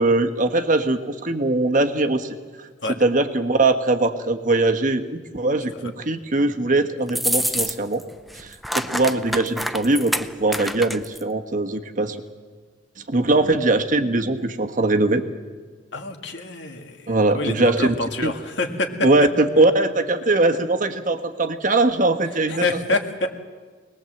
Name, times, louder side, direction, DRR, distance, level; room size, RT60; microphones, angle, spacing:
voice 1, 0.0-2.7 3.0-8.0 8.3-12.2 13.1-15.2 17.1-17.9 18.2-18.3 19.0-22.7, right 2 dB, 45° right, 6 dB, 1.3 m, -21 dB
sound 1, 7.1-8.0 8.3-11.2, equal, ahead, 0.6 m, -26 dB
voice 2, 15.9-19.1 22.5-23.3, left 2 dB, 65° left, 5 dB, 2.1 m, -26 dB
24.5 x 20.0 x 7.8 m, 1.5 s
head